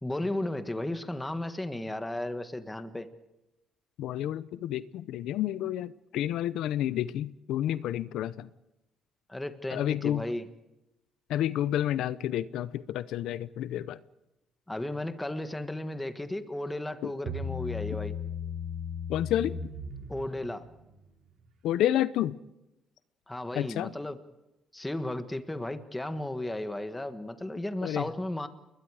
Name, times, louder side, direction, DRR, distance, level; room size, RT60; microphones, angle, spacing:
voice 1, 0.0-3.1 9.3-10.5 14.7-18.1 20.1-20.7 23.3-24.2 24.7-28.5, left 1 dB, 10° left, 9 dB, 1.4 m, -34 dB
voice 2, 4.0-8.5 9.7-10.2 11.3-14.0 17.0-17.1 19.1-19.5 21.6-22.4 23.5-23.9 27.8-28.1, left 12 dB, 80° left, 15 dB, 0.7 m, -30 dB
Bass guitar, 17.3-20.7, left 4 dB, 75° right, 5.3 m, -36 dB
30.0 x 21.5 x 4.9 m, 0.93 s
cardioid pair, 155°, 0 cm